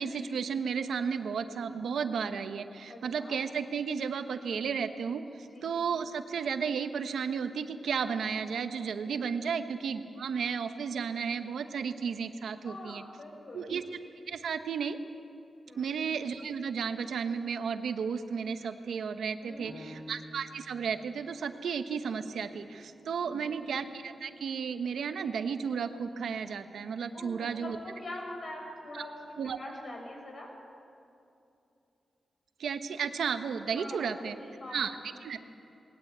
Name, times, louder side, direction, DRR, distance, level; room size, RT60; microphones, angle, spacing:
voice 1, 0.0-13.0 13.5-14.0 14.3-15.0 15.7-27.8 28.9-29.0 29.4-29.6 32.6-34.4 34.7-34.9 35.2-35.4, right 6 dB, 85° right, 8 dB, 1.1 m, -33 dB
voice 2, 2.9-3.4 5.4-5.7 9.1-9.2 12.6-13.7 15.7-15.9 19.4-20.0 23.2-23.6 27.1-30.5 33.7-35.2, left 1 dB, 55° left, 0 dB, 6.7 m, -44 dB
Piano, 19.6-24.8 25.3-25.4 26.0-26.5, equal, 80° left, 6.7 m, -53 dB
21.0 x 18.5 x 8.2 m, 2.7 s
cardioid pair, 70°, 0 cm